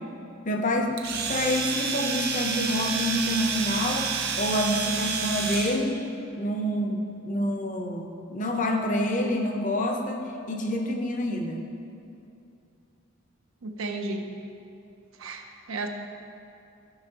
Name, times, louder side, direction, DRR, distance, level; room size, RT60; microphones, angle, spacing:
voice 1, 0.5-1.0 1.3-4.1 4.4-6.0 6.4-11.6, left 1 dB, 40° left, 3 dB, 0.7 m, -27 dB
Domestic sounds home sounds, 1.0-5.8, right 5 dB, 50° right, 0.7 m, -29 dB
voice 2, 13.6-14.3 15.2-15.9, right 3 dB, 85° right, 3 dB, 0.7 m, -33 dB
13.5 x 6.0 x 2.9 m, 2.7 s
head